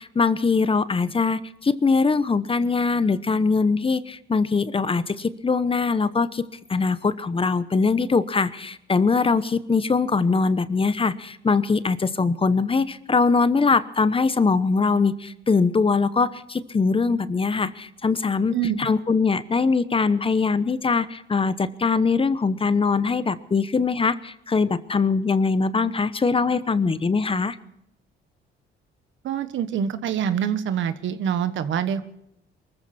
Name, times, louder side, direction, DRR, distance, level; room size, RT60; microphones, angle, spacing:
voice 1, 0.0-6.4 6.7-27.6, left 4 dB, 25° left, 14 dB, 1.0 m, -22 dB
voice 2, 29.2-32.1, right 8 dB, 75° right, 12 dB, 1.4 m, -25 dB
23.0 x 14.5 x 4.3 m, 0.78 s
cardioid pair, 90°, 20 cm